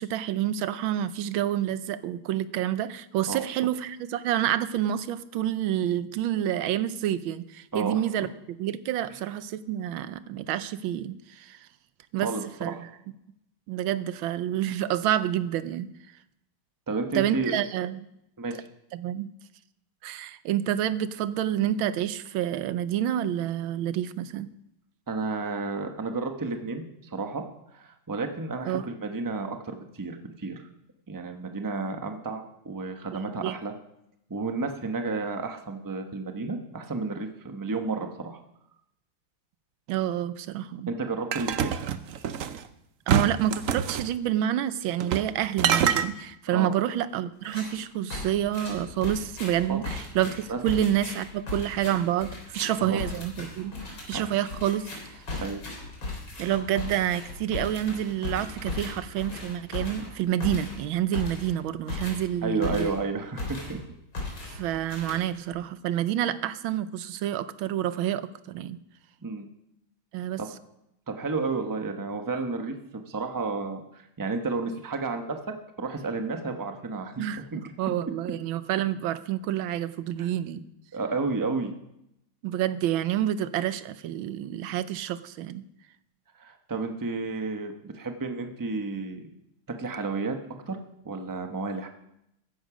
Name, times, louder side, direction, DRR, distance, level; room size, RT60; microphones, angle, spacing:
voice 1, 0.0-8.3 8.6-11.7 12.1-12.3 12.6-12.9 13.7-15.9 17.1-18.1 18.9-19.3 20.0-24.5 28.7-28.9 33.1-33.6 39.9-40.9 43.1-53.8 54.1-54.9 56.4-62.9 64.5-68.8 70.1-70.4 77.2-80.7 82.4-85.6, right 11 dB, 85° right, 14 dB, 1.5 m, -28 dB
voice 2, 16.9-17.6 18.4-18.7 25.1-27.4 27.7-30.6 31.1-33.7 34.3-38.4 40.9-41.8 46.5-46.7 49.7-49.8 50.5-50.6 52.8-53.0 53.8-54.2 55.4-55.6 62.4-63.8 69.2-69.5 70.4-70.5 71.1-77.2 80.2-80.3 80.9-81.7 86.4-89.3 89.8-90.4 90.7-90.8 91.0-91.9, right 3 dB, 15° right, 5 dB, 0.7 m, -32 dB
sound 1, 41.3-42.6 43.1-44.1 45.0-45.3 45.6-46.1, right 8 dB, 70° right, 0.8 m, -25 dB
sound 2, 47.4-47.8 48.1-63.1 63.4-63.8 64.1-65.6, left 3 dB, 80° left, 4.5 m, -37 dB
14.0 x 10.5 x 5.0 m, 0.81 s
omnidirectional pair, 2.1 m